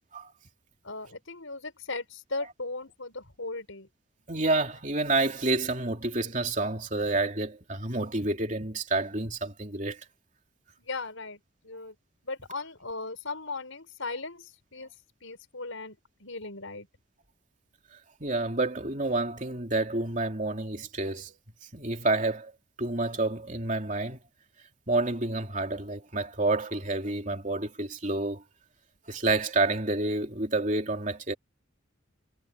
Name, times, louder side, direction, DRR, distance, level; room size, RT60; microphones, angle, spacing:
voice 1, 0.8-3.9 10.8-11.9 12.2-14.9 15.2-16.9, left 3 dB, 80° left, 5.1 m, -38 dB
voice 2, 4.3-10.0 18.2-21.4 21.7-22.5 22.8-24.2 24.9-28.4 29.1-31.3, right 2 dB, 40° right, 3.1 m, -29 dB
head